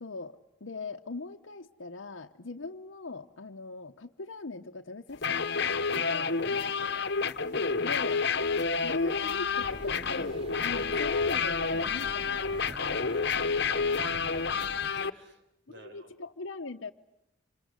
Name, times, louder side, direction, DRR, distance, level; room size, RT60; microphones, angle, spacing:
voice 1, 0.0-7.1 7.8-8.2 8.8-12.4 13.3-13.4 13.7-13.8 15.7-16.9, left 3 dB, 75° left, 3 dB, 1.0 m, -41 dB
sound 1, 5.1-15.1, left 5 dB, 55° left, 1.2 m, -29 dB
voice 2, 6.4-7.0 12.5-14.2 15.1-15.4 15.7-16.1, right 1 dB, 60° right, 5 dB, 5.3 m, -53 dB
sound 2, 9.6-14.9, right 1 dB, 30° right, 1.2 m, -46 dB
27.5 x 25.5 x 8.2 m, 0.84 s
head